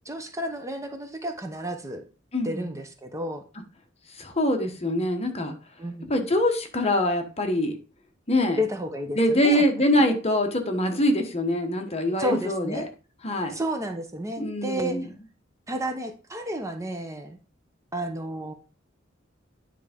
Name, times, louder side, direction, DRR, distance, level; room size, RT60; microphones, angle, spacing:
voice 1, 0.0-2.0 2.4-3.4 5.8-6.1 8.6-9.6 10.0-10.1 12.2-12.9 13.5-15.0 15.7-17.4 17.9-18.5, equal, 15° right, 5 dB, 0.8 m, -31 dB
voice 2, 2.3-2.7 4.2-5.5 6.1-7.8 8.3-8.6 9.1-12.9 13.2-13.5 14.4-15.1, left 1 dB, 30° left, 5 dB, 1.1 m, -24 dB
9.6 x 3.5 x 5.1 m, 0.34 s
head